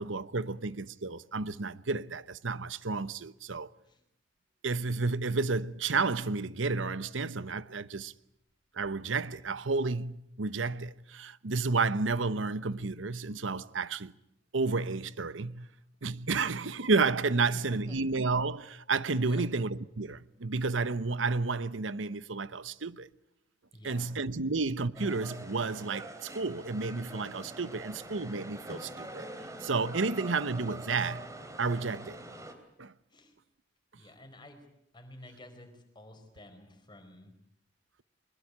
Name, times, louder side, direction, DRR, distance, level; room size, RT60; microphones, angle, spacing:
voice 1, 0.0-3.7 4.6-8.1 8.7-14.1 14.5-15.7 16.0-23.1 23.8-29.3 29.6-31.3 31.6-32.2 32.8-32.9, right 3 dB, 85° right, 1.0 m, -31 dB
voice 2, 23.7-24.2 33.1-33.3 34.0-34.6 34.9-37.3, left 1 dB, 25° left, 5.0 m, -51 dB
sound 1, 25.0-32.5, right 1 dB, 15° right, 3.2 m, -44 dB
23.5 x 21.5 x 9.7 m
head